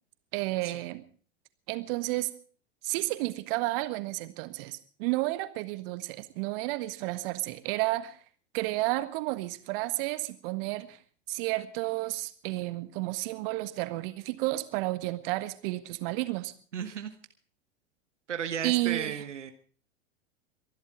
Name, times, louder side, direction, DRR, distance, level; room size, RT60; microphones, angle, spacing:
voice 1, 0.3-1.0 1.7-2.3 2.8-8.2 8.5-11.0 11.3-16.5 18.6-19.2, right 19 dB, 50° right, 12 dB, 1.6 m, -31 dB
voice 2, 16.7-17.1 18.3-19.5, right 8 dB, 75° right, 8 dB, 1.4 m, -34 dB
23.0 x 12.0 x 5.0 m, 0.43 s
figure-of-eight pair, 85°, 36 cm